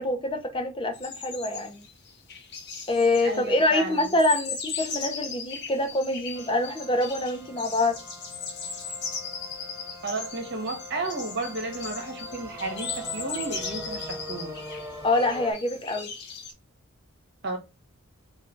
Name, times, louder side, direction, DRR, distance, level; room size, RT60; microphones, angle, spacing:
voice 1, 0.0-1.8 2.9-8.0 15.0-16.1, left 2 dB, 25° left, 0.7 m, -25 dB
sound 1, 0.9-16.5, left 5 dB, 50° left, 0.9 m, -38 dB
voice 2, 3.2-4.1 10.0-14.5 17.4-17.6, right 3 dB, 55° right, 1.2 m, -33 dB
sound 2, 6.3-15.5, equal, 15° right, 0.6 m, -42 dB
3.3 x 2.7 x 3.8 m
head